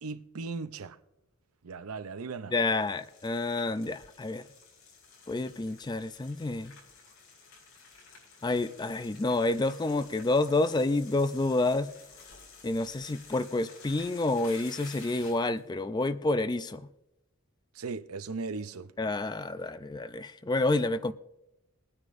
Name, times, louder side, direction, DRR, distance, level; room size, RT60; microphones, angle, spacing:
voice 1, 0.0-1.0 1.6-2.5 17.7-18.9, right 4 dB, 85° right, 0.6 m, -37 dB
voice 2, 2.5-4.5 5.3-6.8 8.4-11.9 12.6-16.9 19.0-21.1, left 2 dB, 20° left, 0.4 m, -29 dB
sound 1, 2.6-15.6, left 4 dB, 75° left, 5.0 m, -52 dB
21.5 x 9.7 x 2.6 m
head